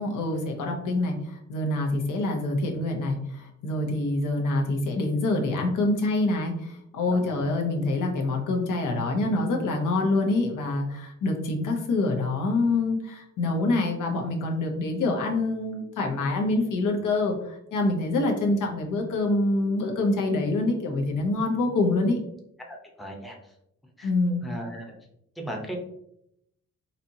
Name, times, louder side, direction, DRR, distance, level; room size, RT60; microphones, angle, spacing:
voice 1, 0.0-22.2 24.0-24.4, left 2 dB, 85° left, 1 dB, 0.8 m, -26 dB
voice 2, 7.1-7.4 22.7-23.4 24.0-24.1 24.4-24.9 25.4-25.8, equal, ahead, 0 dB, 0.6 m, -37 dB
4.2 x 2.8 x 2.6 m, 0.76 s
cardioid pair, 130°, 30 cm